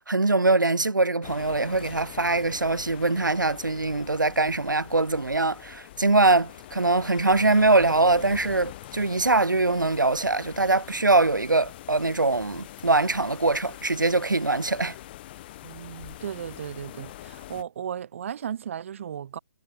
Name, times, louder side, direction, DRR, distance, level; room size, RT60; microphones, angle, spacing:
voice 1, 0.1-14.9, right 2 dB, 85° right, 0.8 m, -23 dB
sound 1, 1.2-17.6, left 15 dB, 30° left, 5.1 m, -44 dB
voice 2, 15.6-19.4, right 9 dB, 40° right, 0.5 m, -35 dB
figure-of-eight pair, 140°, 10 cm